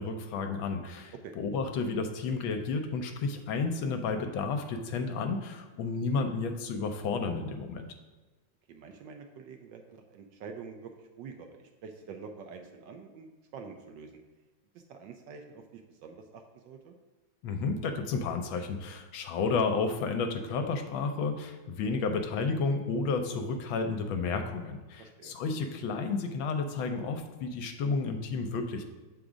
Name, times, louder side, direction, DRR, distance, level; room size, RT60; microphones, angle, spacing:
voice 1, 0.0-7.9 17.4-28.8, left 4 dB, 75° left, 6 dB, 1.3 m, -31 dB
voice 2, 8.7-9.8 10.1-14.2 14.7-16.9 25.0-25.3, right 5 dB, 75° right, 4 dB, 1.2 m, -47 dB
7.0 x 3.9 x 4.8 m, 1.2 s
omnidirectional pair, 2.3 m